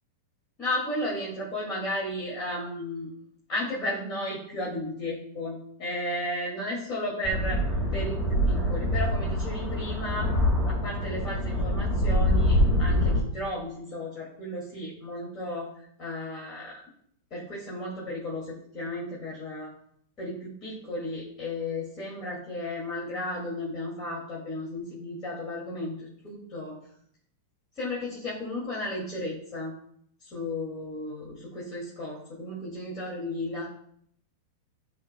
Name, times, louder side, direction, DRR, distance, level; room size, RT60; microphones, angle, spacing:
voice 1, 0.6-3.1 3.5-7.6 7.9-10.3 10.7-15.7 16.0-16.8 17.3-19.7 20.2-26.8 27.8-29.7 30.2-33.7, left 1 dB, 40° left, -5 dB, 2.4 m, -34 dB
sound 1, 7.2-13.2, left 1 dB, 20° left, 2.1 m, -25 dB
9.7 x 5.0 x 2.3 m, 0.65 s
hypercardioid pair, 115°, 0 cm